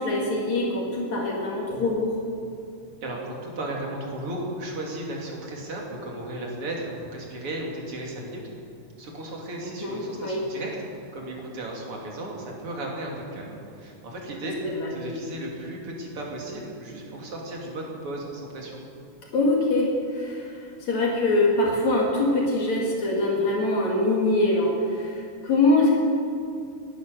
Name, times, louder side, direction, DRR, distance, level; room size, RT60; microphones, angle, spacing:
voice 1, 0.0-2.2 9.6-10.4 14.6-15.1 19.3-26.0, left 2 dB, 65° left, -2 dB, 3.3 m, -24 dB
voice 2, 3.0-8.4 9.0-14.6 14.9-18.8, right 1 dB, 50° right, -1 dB, 3.4 m, -35 dB
20.0 x 11.0 x 6.6 m, 2.6 s
omnidirectional pair, 3.5 m